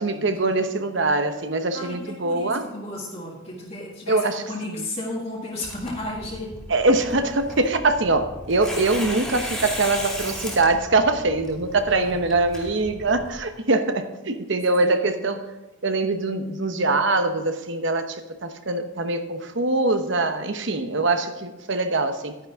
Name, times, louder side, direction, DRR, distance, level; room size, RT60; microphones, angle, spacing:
voice 1, 0.0-2.7 4.1-4.8 6.7-15.5 15.8-22.4, right 2 dB, 60° right, 8 dB, 0.9 m, -23 dB
voice 2, 1.7-6.5 11.9-12.5 14.8-15.1, left 2 dB, 30° left, -5 dB, 1.6 m, -34 dB
Tearing, 5.6-13.4, equal, ahead, 2.5 m, -36 dB
11.5 x 10.5 x 3.6 m, 1.1 s
head